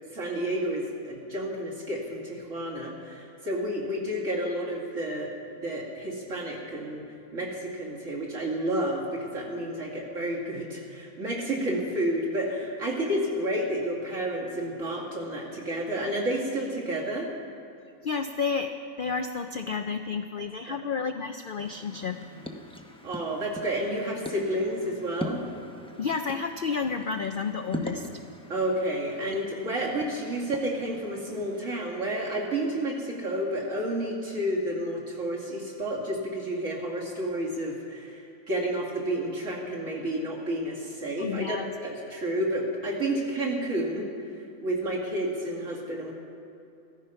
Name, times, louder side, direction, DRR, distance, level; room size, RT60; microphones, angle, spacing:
voice 1, 0.1-7.0 7.3-17.3 20.7-20.8 23.0-25.4 28.5-44.1 44.6-46.1, right 1 dB, 60° right, -4 dB, 2.9 m, -30 dB
voice 2, 18.0-22.2 26.0-28.1 41.2-41.7, left 5 dB, 65° left, 7 dB, 0.5 m, -31 dB
sound 1, 21.6-31.6, left 1 dB, 5° left, 0.6 m, -41 dB
15.0 x 14.0 x 5.7 m, 2.8 s
omnidirectional pair, 1.5 m